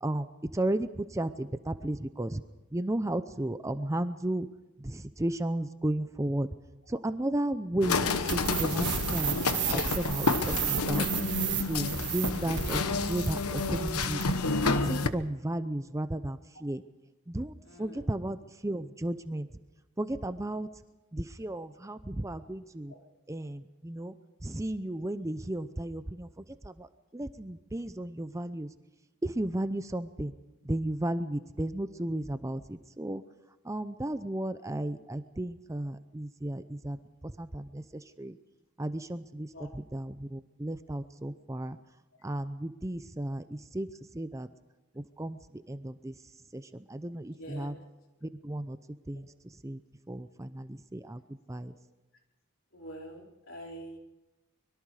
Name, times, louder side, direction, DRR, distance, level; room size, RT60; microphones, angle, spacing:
voice 1, 0.5-2.4 2.7-4.5 4.8-6.5 6.9-11.1 11.7-14.2 14.6-16.8 17.3-19.5 20.0-20.7 21.1-22.9 23.3-24.1 24.4-26.3 26.6-26.9 27.1-28.7 29.2-30.3 30.7-33.2 33.6-37.0 37.2-38.4 38.8-39.5 39.9-41.8 42.2-43.9 44.1-44.5 45.0-45.4 45.7-46.1 46.5-47.7 48.2-48.8 49.1-49.3 49.6-49.8 50.1-51.2 51.5-51.7, right 1 dB, 15° right, 11 dB, 0.6 m, -34 dB
sound 1, 7.8-15.1, left 3 dB, 90° left, 1.1 m, -30 dB
sound 2, 8.3-14.4, right 7 dB, 55° right, 1.7 m, -33 dB
voice 2, 17.6-18.1 22.9-23.0 39.5-39.7 47.3-47.7 51.7-51.8 52.7-54.0, right 1 dB, 60° left, 0 dB, 4.4 m, -46 dB
24.5 x 22.5 x 4.9 m, 1.1 s
head